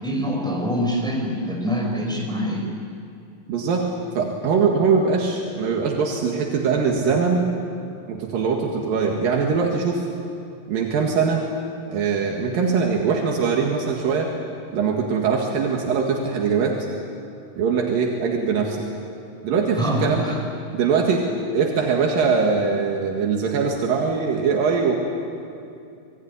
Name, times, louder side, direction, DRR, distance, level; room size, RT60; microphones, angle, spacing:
voice 1, 0.0-2.7 19.8-20.4, equal, ahead, -1 dB, 5.5 m, -25 dB
voice 2, 3.5-3.9 4.1-7.5 8.1-10.1 10.7-11.4 11.9-14.3 14.7-16.9 17.6-18.9 19.4-20.4 20.7-21.3 21.5-24.9, right 5 dB, 80° right, 0 dB, 3.6 m, -22 dB
26.5 x 20.5 x 9.7 m, 2.6 s
omnidirectional pair, 3.9 m